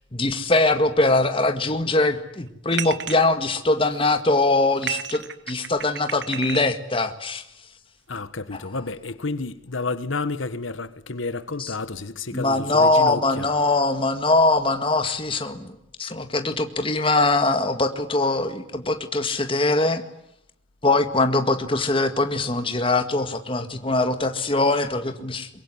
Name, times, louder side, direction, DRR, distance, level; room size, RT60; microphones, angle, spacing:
voice 1, 0.1-7.4 8.5-8.6 11.6-11.7 12.3-20.0 20.8-25.5, left 2 dB, 25° left, 1.9 m, -22 dB
sound 1, 2.7-3.2 3.8-4.2 4.7-6.7, right 9 dB, 60° right, 1.4 m, -33 dB
voice 2, 8.1-13.5, left 3 dB, 85° left, 1.4 m, -30 dB
24.0 x 23.0 x 9.9 m
head